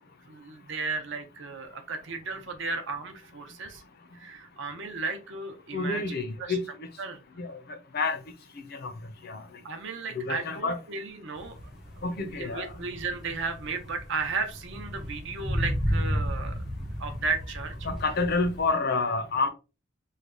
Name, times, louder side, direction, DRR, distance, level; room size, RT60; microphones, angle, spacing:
voice 1, 0.3-3.8 4.2-6.6 7.0-7.2 9.6-11.5 12.3-16.6 17.0-17.7, right 4 dB, 60° right, 0.7 m, -34 dB
voice 2, 5.7-6.9 7.4-7.6 7.9-8.2 8.8-8.9 9.2-9.4 10.1-10.8 12.0-12.7 17.8-19.5, left 3 dB, 50° left, 0.6 m, -28 dB
sound 1, 11.4-18.7, equal, ahead, 0.6 m, -33 dB
3.2 x 2.3 x 3.6 m
head